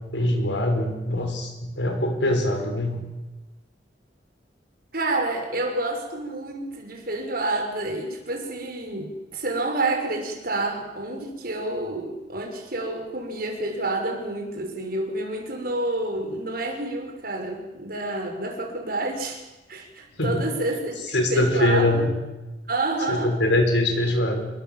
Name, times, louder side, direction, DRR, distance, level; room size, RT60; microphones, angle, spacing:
voice 1, 0.1-3.0 20.2-20.4 21.1-22.1 23.1-24.5, left 1 dB, 85° left, 5 dB, 6.1 m, -23 dB
voice 2, 4.9-19.4 19.7-22.1 22.7-23.3, right 2 dB, 55° right, 3 dB, 6.0 m, -29 dB
28.0 x 21.5 x 7.6 m, 1.1 s
head